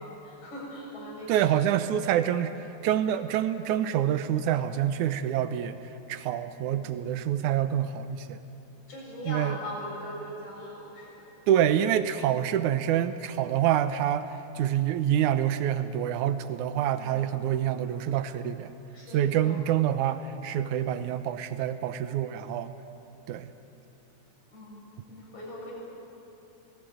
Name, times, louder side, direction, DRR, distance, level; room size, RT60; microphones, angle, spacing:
voice 1, 0.0-1.6 3.5-3.6 6.7-6.8 8.9-11.3 16.9-17.3 18.9-19.6 24.5-24.8 25.1-25.7, left 1 dB, 75° left, -5 dB, 8.7 m, -40 dB
voice 2, 1.3-2.5 2.8-5.8 6.1-8.4 9.2-9.6 11.5-18.7 19.1-22.7 23.3-23.5, right 10 dB, 85° right, 10 dB, 2.3 m, -27 dB
29.0 x 19.0 x 9.3 m, 2.9 s
omnidirectional pair, 3.4 m